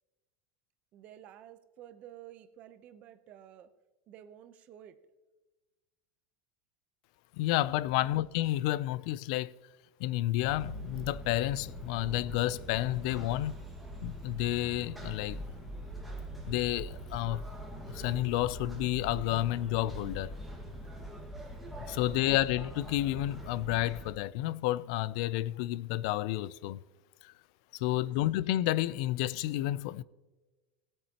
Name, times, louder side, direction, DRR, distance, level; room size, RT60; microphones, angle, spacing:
voice 1, 0.9-3.7 4.1-5.0 7.8-8.2 21.9-22.2 27.8-28.1, right 10 dB, 35° right, 0.8 m, -52 dB
voice 2, 7.4-9.5 10.0-13.7 14.0-15.4 16.5-17.4 17.9-20.3 21.9-26.8 27.2-27.3 27.7-30.0, left 15 dB, 60° left, 0.4 m, -30 dB
sound 1, 10.4-24.1, right 1 dB, ahead, 1.7 m, -43 dB
19.0 x 8.6 x 2.9 m
supercardioid pair, 160°, 4 cm